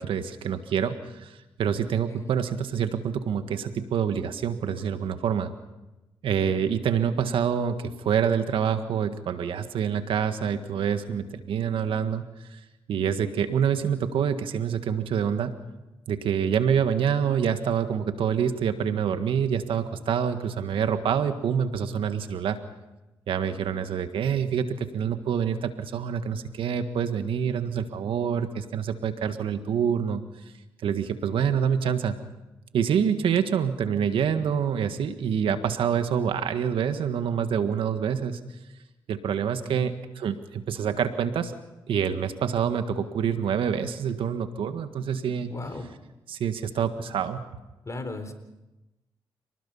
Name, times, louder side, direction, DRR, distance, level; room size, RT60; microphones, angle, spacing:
voice 1, 0.0-5.5 6.2-12.2 12.5-12.6 12.9-15.5 16.1-22.6 23.3-30.2 30.8-32.2 32.7-38.4 39.1-41.5 41.9-45.5 46.3-47.4, right 7 dB, 80° right, 9 dB, 1.7 m, -26 dB
voice 2, 45.5-45.9 47.9-48.3, left 2 dB, 35° left, 9 dB, 4.0 m, -36 dB
28.5 x 19.5 x 5.6 m, 1.0 s
cardioid pair, 60°, 9 cm